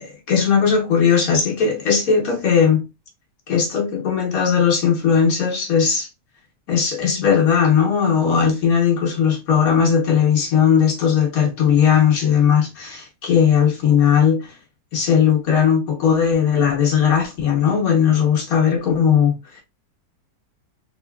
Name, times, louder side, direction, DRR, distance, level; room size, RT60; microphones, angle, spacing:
voice 1, 0.0-2.8 3.5-6.1 6.7-14.5 14.9-19.6, left 7 dB, 65° left, 1.3 m, -18 dB
3.8 x 2.7 x 2.2 m
omnidirectional pair, 1.8 m